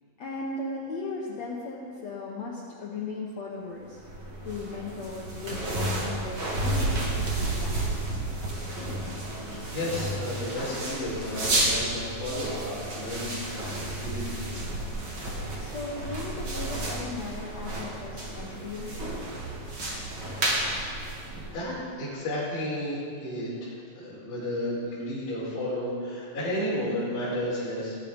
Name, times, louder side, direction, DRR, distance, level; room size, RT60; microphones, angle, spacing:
voice 1, 0.2-4.0 4.4-8.3 15.5-19.2, left 3 dB, 75° left, -3 dB, 1.6 m, -37 dB
sound 1, 3.9-21.8, right 1 dB, 75° right, 1.0 m, -31 dB
voice 2, 9.5-14.3 20.6-20.9 21.3-28.0, left 1 dB, 45° left, -12 dB, 6.0 m, -33 dB
20.5 x 9.4 x 5.3 m, 2.3 s
omnidirectional pair, 4.9 m